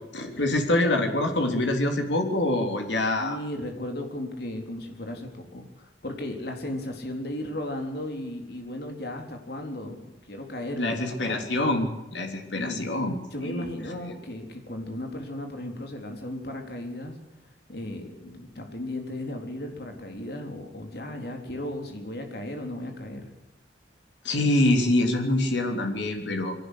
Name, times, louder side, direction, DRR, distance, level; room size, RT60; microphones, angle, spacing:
voice 1, 0.1-3.4 10.8-13.2 13.4-13.7 24.2-26.5, left 1 dB, 90° left, 4 dB, 3.4 m, -25 dB
voice 2, 3.2-11.1 12.5-12.9 13.3-17.2 17.7-23.3, left 1 dB, 60° left, 4 dB, 3.9 m, -35 dB
22.5 x 18.0 x 8.3 m, 0.98 s
head